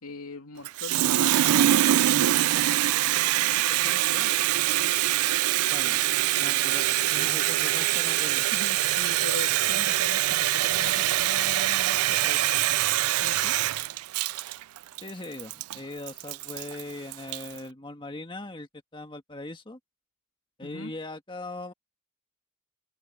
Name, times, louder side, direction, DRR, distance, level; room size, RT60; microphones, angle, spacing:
voice 1, 0.0-2.6 3.7-4.4 8.5-12.5 13.2-13.6 20.6-20.9, left 3 dB, 85° left, 2.9 m, -41 dB
Water tap faucet, 0.6-17.6, right 14 dB, 85° right, 0.4 m, -24 dB
voice 2, 5.7-6.0 6.3-8.5 15.0-19.8 20.6-21.7, left 2 dB, 20° left, 1.7 m, -40 dB
head